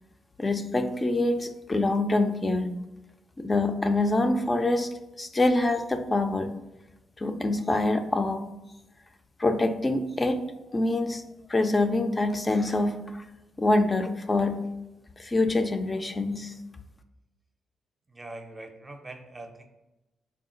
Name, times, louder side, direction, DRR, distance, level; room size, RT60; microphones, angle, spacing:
voice 1, 0.4-2.8 3.4-4.9 5.2-6.5 7.2-8.5 9.4-10.4 10.7-11.2 11.5-13.2 13.6-14.6 15.2-16.5, left 2 dB, 25° left, 7 dB, 0.4 m, -25 dB
voice 2, 18.1-19.7, right 2 dB, 20° right, 5 dB, 0.6 m, -42 dB
3.6 x 2.3 x 3.8 m, 1.0 s
cardioid pair, 85°, 0 cm